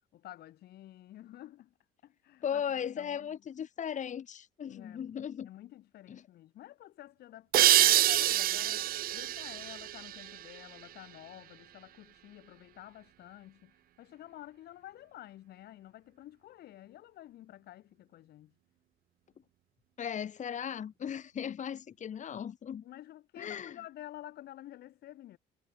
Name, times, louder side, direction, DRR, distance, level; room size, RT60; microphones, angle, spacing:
voice 1, 0.1-1.7 2.0-2.6 3.0-3.4 4.7-5.1 5.4-18.5 22.8-25.4, left 14 dB, 70° left, 5.7 m, -50 dB
voice 2, 2.4-5.5 6.1-6.2 20.0-22.8 23.4-23.8, left 8 dB, 45° left, 4.1 m, -37 dB
sound 1, 7.5-10.9, right 13 dB, 60° right, 0.8 m, -27 dB
cardioid pair, 110°, 17 cm